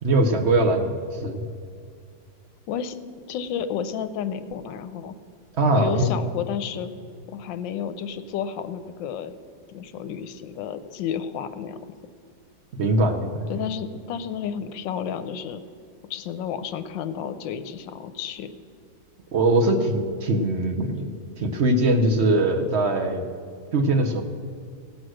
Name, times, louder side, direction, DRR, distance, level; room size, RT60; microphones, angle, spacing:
voice 1, 0.0-1.4 5.6-6.1 12.8-13.5 19.3-23.2 23.7-24.2, right 2 dB, 55° right, 4 dB, 0.7 m, -22 dB
voice 2, 2.7-3.0 3.3-5.1 5.7-6.9 7.3-9.3 9.7-11.8 13.5-15.6 16.1-18.5, left 8 dB, 75° left, 11 dB, 1.3 m, -31 dB
17.0 x 6.3 x 6.3 m, 2.2 s
omnidirectional pair, 2.1 m